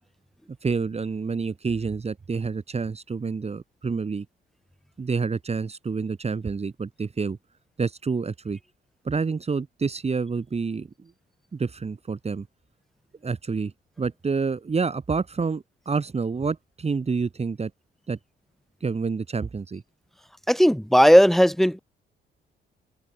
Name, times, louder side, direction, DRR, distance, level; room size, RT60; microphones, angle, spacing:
voice 1, 0.6-4.3 5.0-7.4 7.8-8.6 9.0-11.1 11.5-12.5 13.2-13.7 14.0-17.7 18.1-18.2 18.8-19.8, right 4 dB, 30° right, 3.6 m, -28 dB
voice 2, 20.5-21.8, equal, ahead, 5.2 m, -16 dB
open air
cardioid pair, 90°, 20 cm